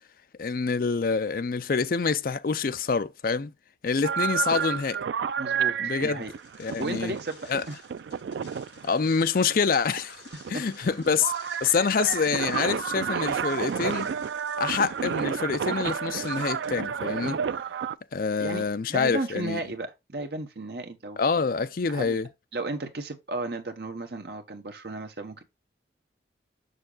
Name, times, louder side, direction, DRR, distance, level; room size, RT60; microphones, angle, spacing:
voice 1, 0.4-3.5 3.8-5.0 5.8-6.2 6.6-7.1 7.5-7.6 8.8-10.2 10.5-11.3 11.6-14.1 14.6-17.4 18.1-19.6 21.2-22.3, left 5 dB, 50° left, 0.4 m, -26 dB
sound 1, 4.0-18.0, right 7 dB, 80° right, 0.3 m, -31 dB
voice 2, 5.4-6.3 6.8-7.4 7.7-7.8 10.5-10.6 18.4-18.6 18.9-21.2 21.9-22.2 22.5-25.4, right 2 dB, 60° right, 1.2 m, -34 dB
sound 2, 6.1-17.6, left 7 dB, 75° left, 3.3 m, -54 dB
6.6 x 6.5 x 2.4 m
head